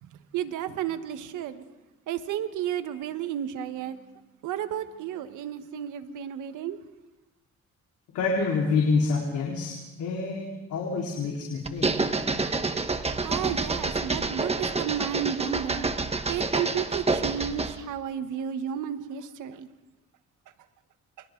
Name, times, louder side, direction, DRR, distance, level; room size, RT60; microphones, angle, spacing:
voice 1, 0.0-1.6 2.1-4.0 4.4-6.8 13.2-15.9 16.3-19.7, right 10 dB, 85° right, 1.4 m, -32 dB
voice 2, 8.1-11.9, left 4 dB, 75° left, 4.3 m, -27 dB
sound 1, 11.7-17.8, right 3 dB, 20° right, 1.5 m, -28 dB
29.0 x 25.5 x 3.9 m
cardioid pair, 90°, 30 cm